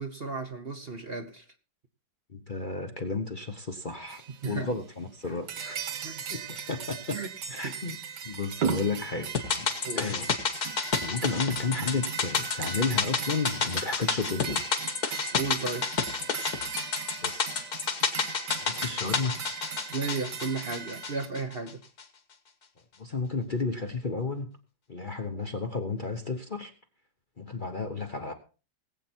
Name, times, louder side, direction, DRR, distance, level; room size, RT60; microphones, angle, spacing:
voice 1, 0.0-1.4 4.4-4.7 5.6-5.7 6.0-6.2 7.1-7.3 7.6-7.7 9.8-10.1 15.3-15.9 19.9-21.8, right 4 dB, 40° right, 6 dB, 1.2 m, -34 dB
voice 2, 2.3-5.8 6.3-7.2 7.5-8.0 8.2-10.4 11.0-14.6 17.2-17.7 18.6-19.4 19.7-19.9 23.0-24.5 24.9-26.7 27.4-28.3, left 4 dB, 35° left, 5 dB, 1.0 m, -33 dB
sound 1, 4.1-4.8 5.3-21.3, right 6 dB, 70° right, 1.9 m, -38 dB
sound 2, 9.3-21.7 22.0-22.1, left 5 dB, 60° left, 2.1 m, -31 dB
20.0 x 8.3 x 4.4 m, 0.35 s
omnidirectional pair, 1.9 m